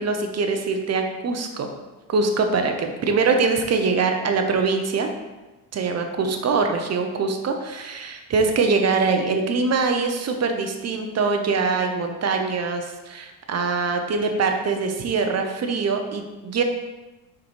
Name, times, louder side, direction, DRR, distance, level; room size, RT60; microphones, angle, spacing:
voice 1, 0.0-1.7 2.1-5.1 5.7-16.6, right 4 dB, 35° right, 5 dB, 1.0 m, -23 dB
6.8 x 5.0 x 3.3 m, 1.1 s
supercardioid pair, 80°, 43 cm